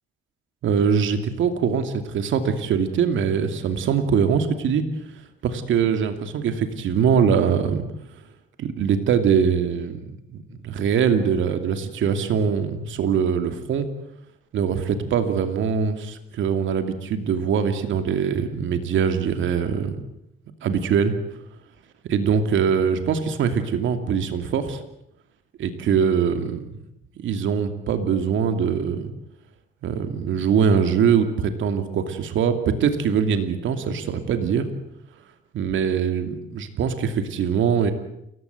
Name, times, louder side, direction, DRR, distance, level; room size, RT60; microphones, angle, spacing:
voice 1, 0.6-4.8 5.4-7.9 8.6-10.0 10.3-13.9 14.5-20.0 20.6-21.1 22.1-24.8 25.6-26.6 27.2-29.1 29.8-34.7 35.5-37.9, right 7 dB, 75° right, 8 dB, 2.6 m, -22 dB
29.0 x 15.5 x 9.3 m, 0.81 s
cardioid pair, 90°, 20 cm